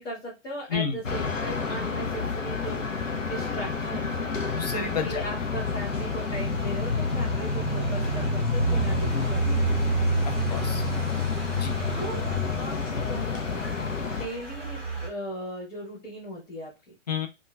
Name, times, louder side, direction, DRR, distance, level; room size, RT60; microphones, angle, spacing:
voice 1, 0.0-4.3 5.0-10.0 11.9-12.2 12.5-16.9, right 1 dB, 60° left, -5 dB, 1.6 m, -38 dB
sound 1, 1.0-14.3, left 5 dB, 85° left, 0.6 m, -29 dB
sound 2, 1.5-15.1, right 3 dB, 5° left, 1.5 m, -32 dB
voice 2, 4.6-5.2 10.3-10.8 11.6-11.7 17.1-17.3, left 6 dB, 35° left, 7 dB, 0.4 m, -30 dB
3.5 x 2.3 x 2.3 m, 0.28 s
figure-of-eight pair, 120°, 37 cm